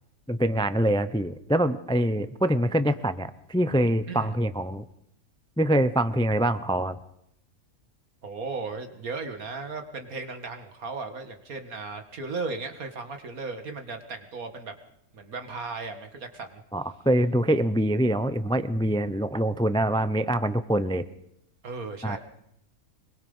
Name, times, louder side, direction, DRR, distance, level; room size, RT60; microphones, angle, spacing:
voice 1, 0.3-4.8 5.6-7.0 16.7-21.0 22.0-22.2, right 1 dB, 5° left, 12 dB, 0.4 m, -24 dB
voice 2, 8.2-14.7 15.1-16.6 21.6-22.2, right 4 dB, 70° right, 6 dB, 2.3 m, -36 dB
24.5 x 22.0 x 5.6 m, 0.77 s
omnidirectional pair, 1.5 m